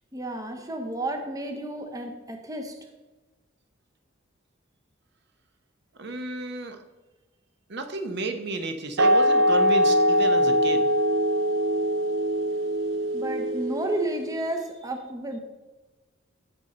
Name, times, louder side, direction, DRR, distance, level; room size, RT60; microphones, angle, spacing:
voice 1, 0.1-2.8 13.1-15.4, right 1 dB, 20° right, 4 dB, 0.8 m, -32 dB
voice 2, 6.0-6.8 7.7-10.9, right 2 dB, 55° right, 6 dB, 1.0 m, -32 dB
sound 1, 9.0-14.4, equal, 75° right, 0.4 m, -22 dB
15.5 x 5.2 x 4.2 m, 1.2 s
head